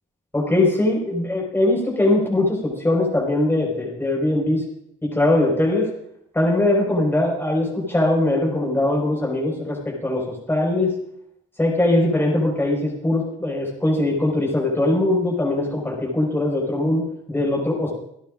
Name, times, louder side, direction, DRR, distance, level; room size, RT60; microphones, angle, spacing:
voice 1, 0.3-4.6 5.0-5.9 6.3-10.9 11.6-17.9, left 1 dB, 10° left, -2 dB, 5.1 m, -21 dB
27.5 x 10.0 x 2.6 m, 0.74 s
cardioid pair, 90°, 20 cm